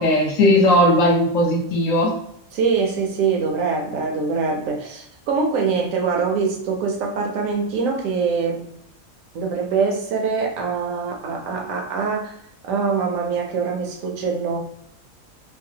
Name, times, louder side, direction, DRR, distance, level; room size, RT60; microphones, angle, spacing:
voice 1, 0.0-2.1, left 1 dB, 70° left, 1.1 m, -17 dB
voice 2, 2.5-8.7 9.3-12.4 12.6-14.6, right 5 dB, 70° right, 1.0 m, -23 dB
3.2 x 2.0 x 2.7 m
omnidirectional pair, 1.5 m